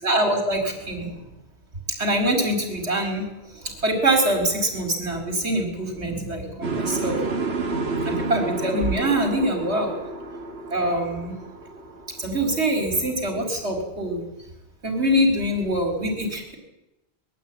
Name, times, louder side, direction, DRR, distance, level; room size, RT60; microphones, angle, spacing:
voice 1, 0.0-1.1 1.9-7.2 8.0-9.9 10.7-11.3 12.2-14.2 14.8-16.6, right 1 dB, 85° right, 3 dB, 4.6 m, -24 dB
sound 1, 6.6-12.6, right 3 dB, 70° right, 1.9 m, -30 dB
21.5 x 13.5 x 9.2 m, 0.95 s
omnidirectional pair, 1.1 m